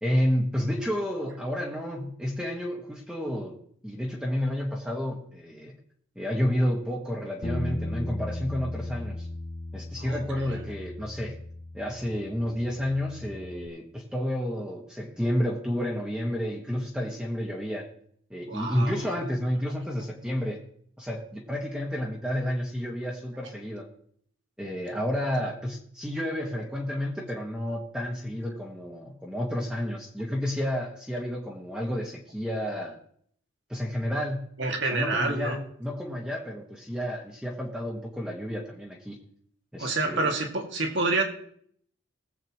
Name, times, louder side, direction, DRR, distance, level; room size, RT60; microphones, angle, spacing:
voice 1, 0.0-3.6 3.8-5.7 6.1-9.3 9.7-11.4 11.7-17.9 18.3-20.6 21.0-23.9 24.6-33.0 33.7-34.4 34.9-39.2 39.7-40.3, equal, 5° right, -2 dB, 1.5 m, -30 dB
Bass guitar, 7.4-13.7, left 1 dB, 35° left, 0.8 m, -37 dB
voice 2, 10.0-10.6 18.5-19.0 34.6-35.6 39.8-41.2, right 3 dB, 60° right, 2 dB, 2.2 m, -28 dB
20.5 x 8.1 x 3.0 m, 0.62 s
head